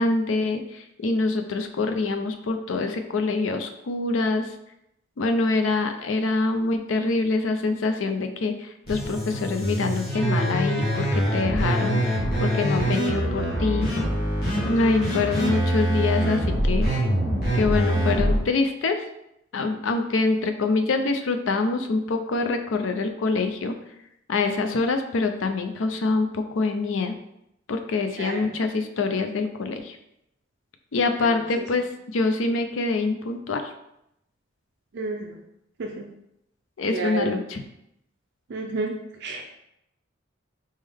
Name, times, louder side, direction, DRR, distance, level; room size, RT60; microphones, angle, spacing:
voice 1, 0.0-4.5 5.2-13.9 14.6-16.9 17.5-19.0 19.5-23.8 24.3-27.1 27.7-30.0 30.9-33.7 36.8-37.6, left 3 dB, 65° left, 6 dB, 0.4 m, -25 dB
sound 1, 8.9-18.4, right 1 dB, 50° left, 1.5 m, -24 dB
voice 2, 34.9-35.3 35.8-35.9 36.9-37.3 38.5-38.9 39.2-39.5, right 3 dB, 55° right, 2 dB, 0.4 m, -30 dB
4.2 x 3.6 x 3.4 m, 0.82 s
head